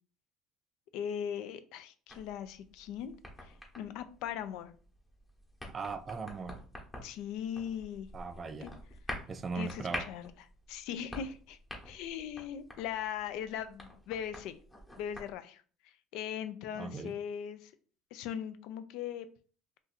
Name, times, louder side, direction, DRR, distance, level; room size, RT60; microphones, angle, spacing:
voice 1, 0.9-3.1 3.4-4.7 7.0-8.1 8.6-8.7 9.6-10.3 10.7-11.6 11.8-14.6 15.0-15.6 16.1-17.7 18.1-19.3, left 9 dB, 70° left, 0.4 m, -39 dB
sound 1, 2.1-15.3, left 1 dB, 15° left, 0.9 m, -47 dB
voice 2, 5.7-6.6 8.1-8.7 9.3-10.1 16.7-17.1, right 4 dB, 25° right, 0.3 m, -38 dB
2.6 x 2.5 x 4.0 m
cardioid pair, 130°, 0 cm